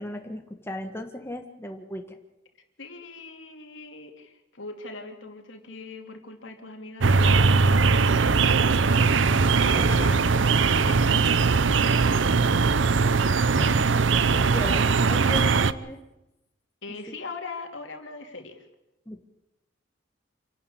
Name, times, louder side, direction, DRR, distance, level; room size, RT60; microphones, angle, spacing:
voice 1, 0.0-2.2 9.6-10.0 11.0-11.2 13.5-16.0 19.0-19.3, left 1 dB, 15° left, 4 dB, 1.6 m, -37 dB
voice 2, 2.8-9.0 9.5-11.1 12.3-12.6 16.8-18.7, left 3 dB, 85° left, 4 dB, 3.0 m, -41 dB
sound 1, 7.0-15.7, right 4 dB, 80° right, 0.7 m, -20 dB
27.0 x 12.0 x 8.7 m, 0.93 s
head